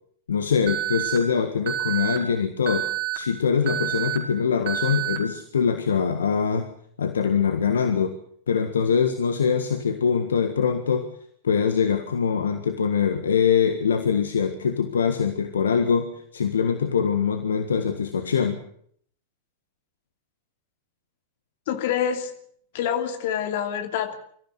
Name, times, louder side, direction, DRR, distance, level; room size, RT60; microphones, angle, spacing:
voice 1, 0.3-2.9 3.1-6.7 7.0-8.1 8.5-11.1 11.4-18.6, left 6 dB, 70° left, 7 dB, 1.6 m, -23 dB
Alarm, 0.7-1.2 1.7-2.2 2.7-3.2 3.7-4.2 4.7-5.2, right 13 dB, 45° right, 4.8 m, -28 dB
voice 2, 21.7-22.3 22.7-24.2, left 9 dB, 55° left, 7 dB, 2.7 m, -26 dB
24.0 x 14.5 x 8.1 m, 0.63 s
figure-of-eight pair, 90°, 0 cm